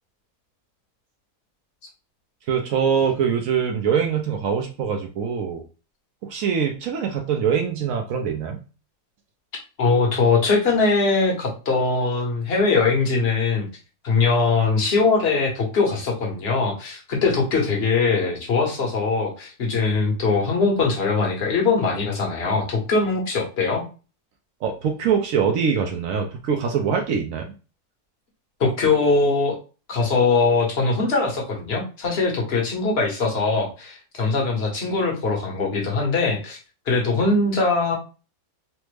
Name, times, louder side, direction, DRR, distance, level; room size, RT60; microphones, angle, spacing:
voice 1, 2.5-5.6 6.2-8.6 24.6-27.4, right 7 dB, 70° right, 3 dB, 0.9 m, -23 dB
voice 2, 9.8-13.7 14.0-23.8 28.6-29.6 29.9-36.6 36.9-37.9, left 4 dB, 45° left, 0 dB, 1.1 m, -21 dB
3.2 x 2.0 x 3.2 m, 0.34 s
omnidirectional pair, 1.6 m